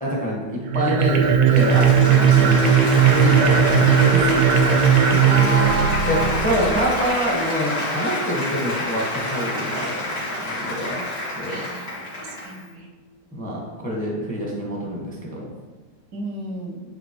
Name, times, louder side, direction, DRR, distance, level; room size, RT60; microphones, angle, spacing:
voice 1, 0.0-2.7 3.1-4.5 5.1-5.2 6.0-6.2 6.4-11.0 11.4-11.6 13.3-15.4, equal, 5° left, -3 dB, 0.8 m, -26 dB
sound 1, 0.6-6.9, right 7 dB, 70° right, 1.0 m, -17 dB
Applause, 1.1-12.6, left 1 dB, 55° left, 2.1 m, -28 dB
voice 2, 5.3-6.4 11.5-12.9 16.1-16.8, right 3 dB, 90° right, 1 dB, 1.7 m, -30 dB
9.9 x 3.3 x 3.0 m, 1.3 s
omnidirectional pair, 2.0 m